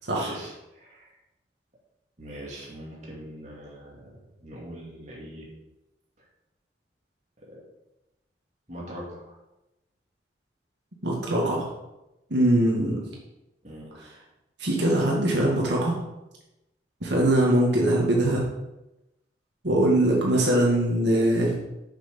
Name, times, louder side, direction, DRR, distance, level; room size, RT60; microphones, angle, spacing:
voice 1, 0.1-1.2 2.2-4.1 4.4-5.5 7.5-7.6 8.7-9.4 13.6-13.9, equal, 40° right, -4 dB, 2.5 m, -41 dB
voice 2, 11.0-11.7 12.3-13.0 14.6-15.9 17.0-18.4 19.6-21.5, right 1 dB, 75° right, -3 dB, 2.0 m, -22 dB
6.9 x 6.3 x 6.0 m, 0.96 s
head